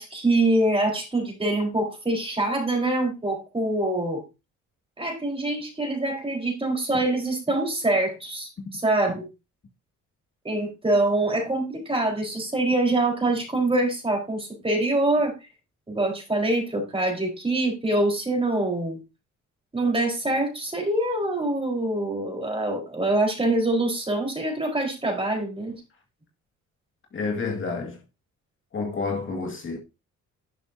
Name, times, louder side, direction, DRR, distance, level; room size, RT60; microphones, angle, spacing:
voice 1, 0.0-4.2 5.0-9.3 10.4-15.3 15.9-19.0 19.7-25.8, right 2 dB, 20° right, 4.3 m, -25 dB
voice 2, 27.1-28.0 28.7-29.8, left 4 dB, 40° left, 2.0 m, -29 dB
11.5 x 6.9 x 2.7 m
cardioid pair, 90°, 30 cm